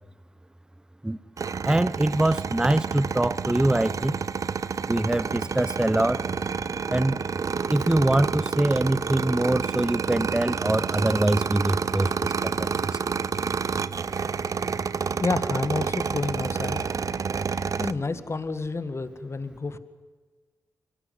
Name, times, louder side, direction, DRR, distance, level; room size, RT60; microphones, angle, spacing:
sound 1, 1.4-17.9, right 6 dB, 55° right, 0.7 m, -29 dB
voice 1, 1.6-4.2 4.9-6.2 6.9-7.2 7.7-12.7, right 1 dB, 10° right, 18 dB, 0.7 m, -24 dB
sound 2, 5.0-18.2, right 2 dB, 35° right, 3.8 m, -45 dB
voice 2, 15.2-16.8 17.8-19.8, left 3 dB, 40° left, 12 dB, 1.9 m, -29 dB
23.5 x 18.0 x 9.6 m, 1.4 s
supercardioid pair, 45°, 7 cm